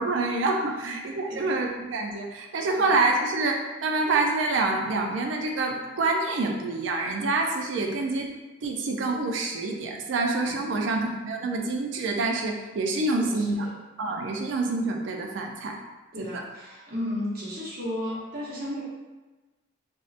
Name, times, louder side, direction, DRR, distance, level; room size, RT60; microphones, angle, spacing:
voice 1, 0.0-8.3 8.6-13.6 14.0-15.8 16.2-16.3, right 3 dB, 75° right, 2 dB, 0.4 m, -27 dB
voice 2, 13.1-13.7 16.1-18.8, left 1 dB, 50° right, -7 dB, 0.7 m, -34 dB
2.7 x 2.1 x 2.4 m, 1.2 s
head